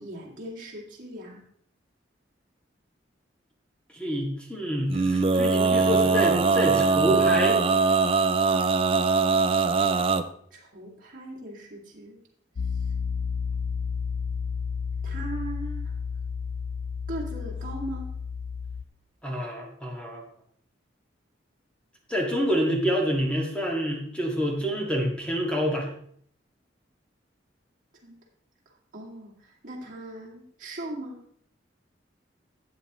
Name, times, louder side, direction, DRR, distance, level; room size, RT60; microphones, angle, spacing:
voice 1, 0.0-1.4 10.5-12.2 15.0-15.8 17.1-18.1 28.0-28.2 28.9-31.2, right 1 dB, 45° right, -4 dB, 2.5 m, -39 dB
voice 2, 3.9-7.6 19.2-20.2 22.1-25.9, equal, 5° left, -1 dB, 1.9 m, -27 dB
Male singing, 4.9-10.2, right 4 dB, 30° right, 0.5 m, -22 dB
Piano, 12.6-18.8, left 6 dB, 45° left, 0.3 m, -31 dB
12.5 x 8.0 x 3.1 m, 0.63 s
head